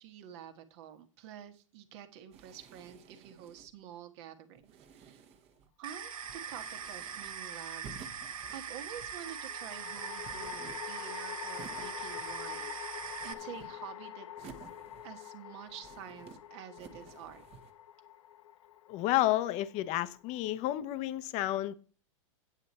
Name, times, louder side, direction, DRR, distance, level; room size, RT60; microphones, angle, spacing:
voice 1, 0.0-5.2 5.8-12.7 13.2-14.7 15.0-17.4, right 9 dB, 55° right, 1.5 m, -49 dB
sound 1, 2.3-3.8 4.6-5.7 6.2-7.4 7.8-9.3 9.9-11.1 11.5-12.6 12.9-13.9 14.4-15.3 15.7-16.4 16.8-17.7, right 6 dB, 35° right, 1.3 m, -54 dB
sound 2, 5.8-13.3, right 7 dB, 80° right, 1.2 m, -42 dB
sound 3, 6.1-6.8 9.2-20.5, left 12 dB, 70° left, 0.6 m, -46 dB
voice 2, 18.9-21.7, left 15 dB, 40° left, 0.8 m, -31 dB
9.0 x 8.0 x 4.3 m
hypercardioid pair, 110°, 17 cm